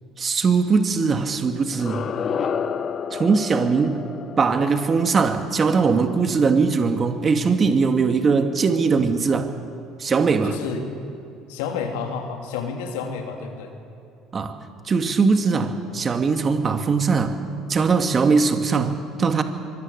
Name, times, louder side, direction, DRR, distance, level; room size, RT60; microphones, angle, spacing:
voice 1, 0.2-2.1 3.1-4.0 4.4-9.5 10.0-10.6 14.3-14.6 14.9-17.4 17.7-19.4, right 5 dB, 35° right, 7 dB, 2.0 m, -20 dB
sound 1, 1.7-6.6, left 7 dB, 45° left, 1.0 m, -31 dB
voice 2, 10.4-10.8 11.5-13.7, left 6 dB, 70° left, 4 dB, 3.0 m, -30 dB
24.5 x 21.0 x 6.7 m, 2.6 s
hypercardioid pair, 60°, 0 cm